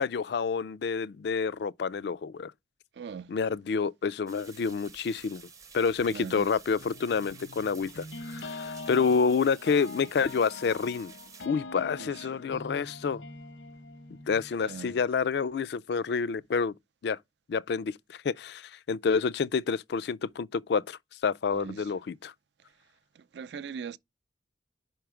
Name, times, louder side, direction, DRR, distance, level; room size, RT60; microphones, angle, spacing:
voice 1, 0.0-2.5 3.3-5.4 5.7-11.1 11.5-13.2 14.3-16.7 17.0-17.2 17.5-22.3, left 5 dB, 60° left, 0.4 m, -28 dB
voice 2, 2.9-3.3 6.1-6.5 12.0-12.3 14.6-15.0 21.5-21.9 23.1-24.0, right 6 dB, 65° right, 0.4 m, -41 dB
sound 1, 4.3-11.5, right 5 dB, 20° right, 0.6 m, -51 dB
sound 2, 6.8-15.2, left 3 dB, 90° left, 1.0 m, -44 dB
5.4 x 4.5 x 4.9 m
head